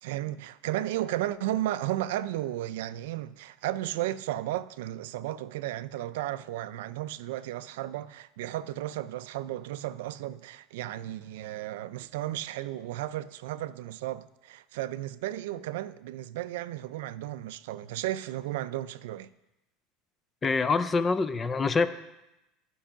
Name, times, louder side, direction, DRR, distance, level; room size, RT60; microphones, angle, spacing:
voice 1, 0.0-19.3, right 14 dB, 90° right, 0.4 m, -34 dB
voice 2, 20.4-21.9, left 4 dB, 15° left, 0.4 m, -25 dB
13.0 x 5.4 x 5.8 m
cardioid pair, 175°, 0 cm